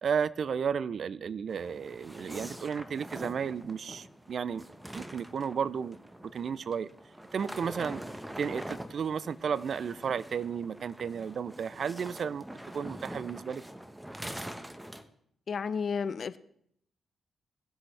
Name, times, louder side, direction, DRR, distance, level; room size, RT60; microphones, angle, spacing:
voice 1, 0.0-4.6 4.9-6.0 6.2-6.9 7.3-8.0 8.4-12.4 12.7-13.6, right 7 dB, 65° right, 19 dB, 0.4 m, -33 dB
sound 1, 1.5-15.0, right 1 dB, 10° right, 1.2 m, -44 dB
voice 2, 15.5-16.4, left 6 dB, 60° left, 16 dB, 0.6 m, -32 dB
18.5 x 7.7 x 3.4 m, 0.69 s
hypercardioid pair, 40°, 0 cm